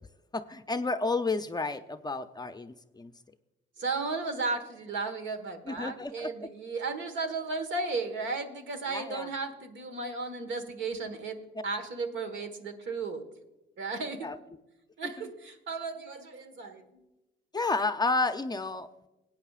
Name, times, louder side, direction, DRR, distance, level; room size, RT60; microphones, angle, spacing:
voice 1, 0.3-3.1 5.7-6.5 8.9-9.3 14.2-14.4 15.0-15.3 17.5-18.9, left 3 dB, 20° left, 9 dB, 0.5 m, -31 dB
voice 2, 3.8-13.3 13.8-14.3 15.0-17.0, right 3 dB, 70° right, 6 dB, 1.5 m, -35 dB
19.0 x 9.0 x 2.4 m, 0.98 s
cardioid pair, 90°, 20 cm